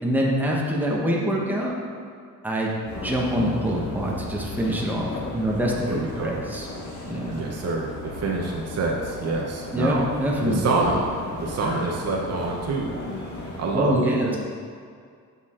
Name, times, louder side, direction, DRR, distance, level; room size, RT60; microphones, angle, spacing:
voice 1, 0.0-1.7 2.4-2.7 3.0-6.7 7.1-7.4 9.7-10.6 13.7-14.4, equal, 5° right, -3 dB, 1.1 m, -25 dB
sound 1, 2.8-13.8, left 2 dB, 60° left, 1.9 m, -35 dB
voice 2, 5.9-6.4 7.3-10.0 10.4-11.1 11.4-13.0 13.6-14.4, right 3 dB, 45° right, -2 dB, 1.0 m, -26 dB
7.0 x 6.6 x 3.8 m, 2.2 s
cardioid pair, 115°, 33 cm